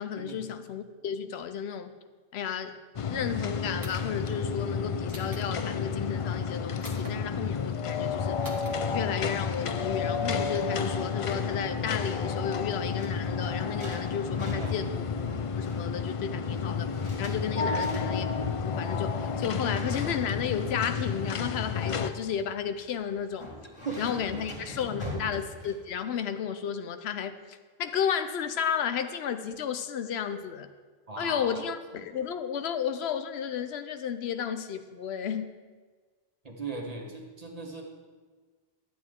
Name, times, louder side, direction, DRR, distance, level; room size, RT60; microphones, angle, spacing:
voice 1, 0.0-1.9 2.3-2.8 3.1-8.4 8.9-15.0 15.6-16.9 17.2-18.3 18.6-23.5 24.0-30.7 31.2-35.5, left 8 dB, 85° left, 10 dB, 0.9 m, -33 dB
sound 1, 3.0-22.1, left 5 dB, 55° left, 0.3 m, -31 dB
sound 2, 3.8-4.2 5.1-5.5 6.8-7.2 8.4-8.7, equal, 20° right, 1.2 m, -44 dB
sound 3, 12.5-26.2, left 2 dB, 30° left, 1.9 m, -42 dB
voice 2, 14.3-14.8 17.6-17.8 23.8-24.0 24.5-25.1 31.1-31.6 31.9-32.1 36.4-37.8, right 3 dB, 40° right, 1 dB, 1.3 m, -39 dB
11.0 x 8.5 x 3.6 m, 1.4 s
omnidirectional pair, 1.0 m